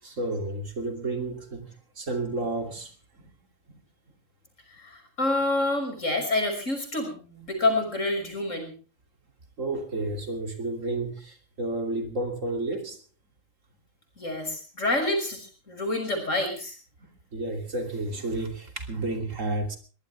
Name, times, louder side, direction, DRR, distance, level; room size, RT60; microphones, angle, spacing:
voice 1, 0.0-3.3 3.7-3.8 9.6-13.0 17.3-19.8, right 2 dB, 75° right, 3.3 m, -31 dB
voice 2, 4.8-8.7 14.2-16.8, left 2 dB, 70° left, 6.4 m, -28 dB
22.5 x 18.5 x 3.4 m
omnidirectional pair, 1.3 m